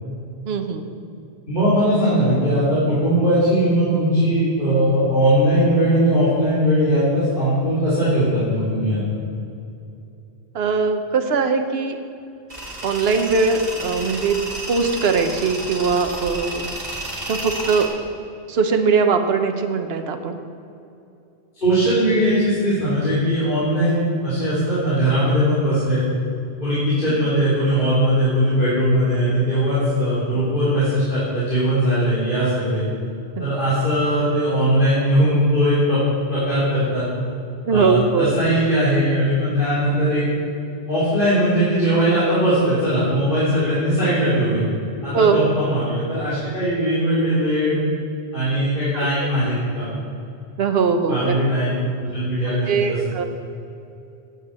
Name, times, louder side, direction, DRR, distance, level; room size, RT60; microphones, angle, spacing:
voice 1, 0.5-1.0 10.5-12.0 12.8-14.4 14.7-16.6 17.3-17.9 18.5-20.4 33.4-33.5 37.6-38.3 45.1-45.4 48.9-49.1 50.6-51.3 52.7-53.2, right 5 dB, 70° right, 6 dB, 1.1 m, -20 dB
voice 2, 1.5-9.0 21.6-26.0 26.6-32.8 33.4-36.0 36.3-37.1 37.7-40.2 40.9-44.6 45.0-47.8 48.3-49.9 51.1-53.0, equal, 50° left, -11 dB, 3.2 m, -19 dB
Tools, 12.5-17.9, right 1 dB, 40° right, 2.3 m, -31 dB
9.0 x 8.2 x 7.3 m, 2.7 s
omnidirectional pair, 1.1 m